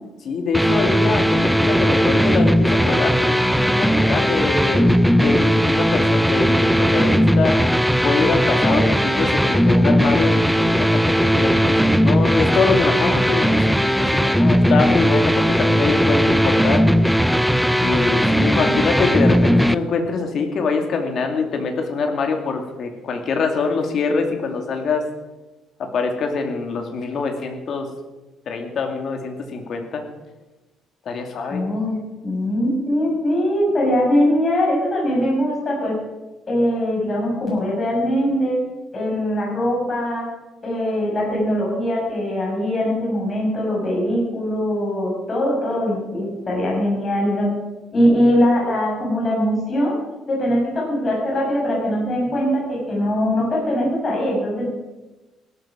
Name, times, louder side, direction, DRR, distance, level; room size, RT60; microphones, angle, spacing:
voice 1, 0.2-7.6 8.0-16.8 17.8-25.1 25.8-27.9 28.5-30.0 31.1-31.7, left 4 dB, 50° left, 4 dB, 2.6 m, -24 dB
sound 1, 0.5-19.8, equal, ahead, 0.5 m, -17 dB
voice 2, 18.4-18.8 31.5-32.0 32.2-36.0 36.5-38.6 38.9-40.3 40.6-47.5 47.9-50.0 50.3-54.7, equal, 25° left, -3 dB, 6.9 m, -21 dB
17.0 x 13.0 x 5.3 m, 1.1 s
cardioid pair, 150°, 0 cm